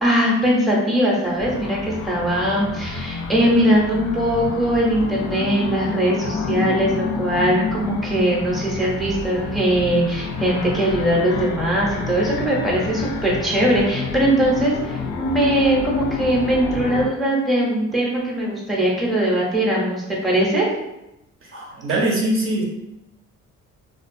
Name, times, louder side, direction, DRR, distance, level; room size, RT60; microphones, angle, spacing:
voice 1, 0.0-20.7, right 1 dB, ahead, -4 dB, 0.6 m, -20 dB
sound 1, 1.4-17.1, left 5 dB, 75° left, 0.5 m, -28 dB
voice 2, 21.4-22.6, right 1 dB, 45° right, -2 dB, 0.6 m, -22 dB
2.4 x 2.2 x 2.5 m, 0.89 s
cardioid pair, 90°, 30 cm